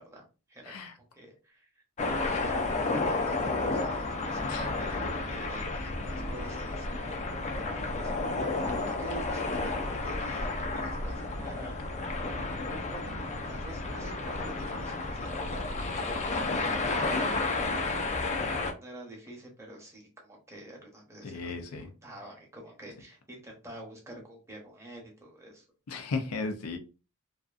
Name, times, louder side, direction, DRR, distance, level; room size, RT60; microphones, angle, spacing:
voice 1, 0.0-0.9 1.1-1.7 2.0-8.1 8.6-11.8 12.3-12.6 12.9-18.4 18.8-21.5 22.0-25.6, right 1 dB, 15° right, 0.8 m, -47 dB
voice 2, 0.6-0.9 4.4-4.7 21.2-21.9 25.9-26.8, left 3 dB, 85° left, 0.5 m, -35 dB
sound 1, 2.0-18.7, left 3 dB, 30° left, 0.4 m, -31 dB
2.5 x 2.4 x 2.3 m
head